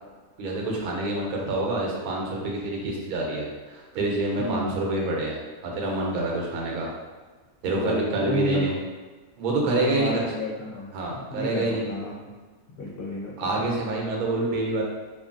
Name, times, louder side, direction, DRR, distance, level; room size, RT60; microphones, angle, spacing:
voice 1, 0.4-6.9 7.6-8.8 9.4-10.3 10.9-11.8 13.4-14.8, right 2 dB, 85° right, -1 dB, 1.1 m, -27 dB
voice 2, 4.4-4.7 7.6-8.7 9.6-12.3 12.8-13.3, left 1 dB, 55° left, -6 dB, 0.7 m, -31 dB
2.6 x 2.5 x 2.5 m, 1.3 s
omnidirectional pair, 1.5 m